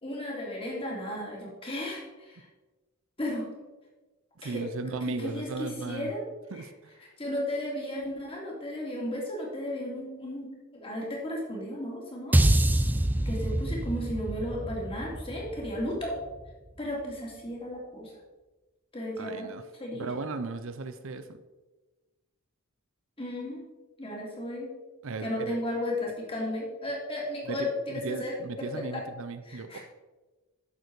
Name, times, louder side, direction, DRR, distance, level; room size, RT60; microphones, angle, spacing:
voice 1, 0.0-2.4 3.2-3.5 4.4-4.7 5.0-6.2 6.5-6.6 7.2-12.4 13.2-16.1 16.8-18.1 18.9-19.5 19.8-20.1 23.2-23.6 24.0-24.7 25.2-29.0 29.4-29.8, left 1 dB, 25° left, -3 dB, 2.8 m, -34 dB
voice 2, 4.4-6.1 6.5-6.7 19.2-19.6 20.0-21.3 25.0-25.6 27.5-29.8, right 3 dB, 60° right, 10 dB, 0.6 m, -36 dB
sound 1, 12.3-16.7, right 1 dB, 10° right, 0.4 m, -26 dB
11.0 x 6.9 x 4.7 m, 1.2 s
head